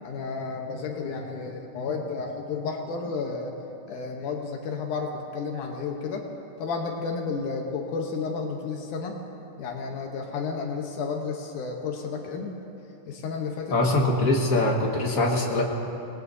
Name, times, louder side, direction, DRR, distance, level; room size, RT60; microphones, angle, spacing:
voice 1, 0.0-3.6 3.9-6.3 6.6-9.2 9.6-12.6 13.1-13.8, left 4 dB, 80° left, 2 dB, 2.5 m, -32 dB
voice 2, 13.7-15.6, left 2 dB, 35° left, -1 dB, 1.4 m, -23 dB
26.0 x 19.5 x 2.7 m, 3.0 s
omnidirectional pair, 3.5 m